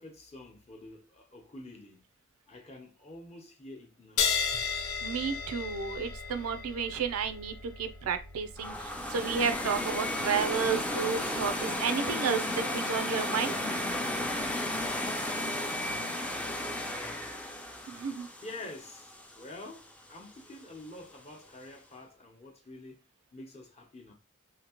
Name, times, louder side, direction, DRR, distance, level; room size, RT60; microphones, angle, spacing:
voice 1, 0.0-2.0 2.5-4.7 15.5-17.3 18.4-23.0 23.3-24.1, left 2 dB, 30° left, 0.8 m, -48 dB
sound 1, 4.2-11.2, left 6 dB, 80° left, 0.6 m, -36 dB
voice 2, 5.0-13.6 17.9-18.3, right 6 dB, 85° right, 0.4 m, -32 dB
sound 2, 8.6-19.6, left 1 dB, 5° left, 0.4 m, -34 dB
2.8 x 2.7 x 2.9 m
head